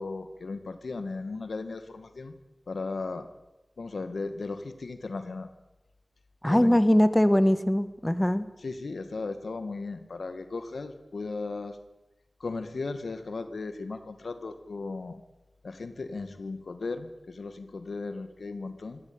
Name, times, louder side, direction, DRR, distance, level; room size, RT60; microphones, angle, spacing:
voice 1, 0.0-2.3 2.7-3.3 3.8-5.5 6.5-6.8 8.6-11.8 12.4-15.2 15.6-19.0, left 3 dB, 90° left, 10 dB, 2.1 m, -36 dB
voice 2, 6.4-8.5, left 1 dB, 15° left, 12 dB, 1.8 m, -22 dB
24.0 x 17.5 x 8.9 m, 1.0 s
wide cardioid pair, 45°, 0 cm